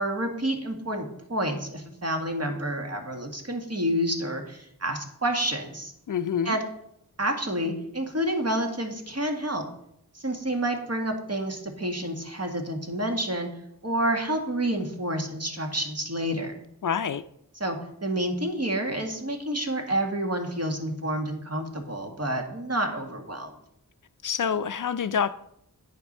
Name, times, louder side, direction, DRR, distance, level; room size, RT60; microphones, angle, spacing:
voice 1, 0.0-5.9 6.4-6.6 7.2-9.6 10.1-13.5 13.8-16.6 17.6-23.5, right 1 dB, 40° right, 3 dB, 1.7 m, -29 dB
voice 2, 6.1-6.6 16.8-17.2 24.2-25.3, left 7 dB, 60° left, 14 dB, 0.4 m, -27 dB
8.9 x 5.9 x 5.4 m, 0.76 s
wide cardioid pair, 50°, 37 cm